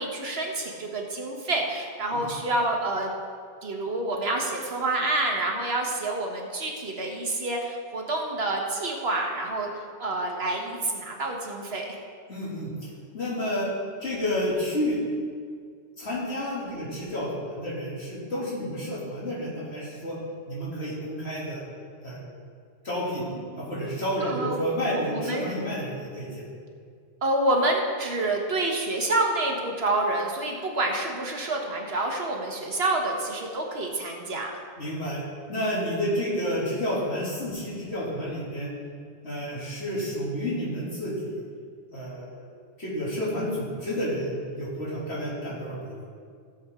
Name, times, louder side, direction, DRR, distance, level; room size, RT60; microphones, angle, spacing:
voice 1, 0.0-3.1 3.6-11.9 23.2-23.7 24.2-24.6 24.9-25.5 26.3-26.4 27.2-34.5, right 2 dB, 70° right, 1 dB, 1.7 m, -28 dB
voice 2, 12.3-12.9 13.1-13.7 14.0-15.0 16.0-20.2 20.5-21.6 22.0-22.2 22.8-23.2 23.6-26.5 34.8-35.2 35.5-38.7 39.2-41.4 41.9-42.4 42.8-46.0, equal, 80° left, -7 dB, 3.2 m, -30 dB
16.0 x 7.4 x 3.7 m, 2.1 s
omnidirectional pair, 1.1 m